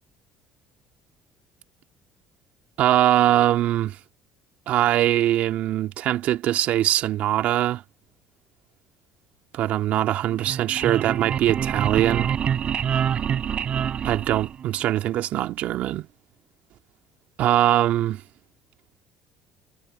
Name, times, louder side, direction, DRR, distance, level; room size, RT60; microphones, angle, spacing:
voice 1, 2.8-4.0 4.7-7.8 9.5-12.3 14.0-16.1 17.4-18.2, right 13 dB, 65° right, 2.5 m, -22 dB
sound 1, 10.2-14.9, right 8 dB, 50° right, 5.0 m, -26 dB
hypercardioid pair, 70°, 3 cm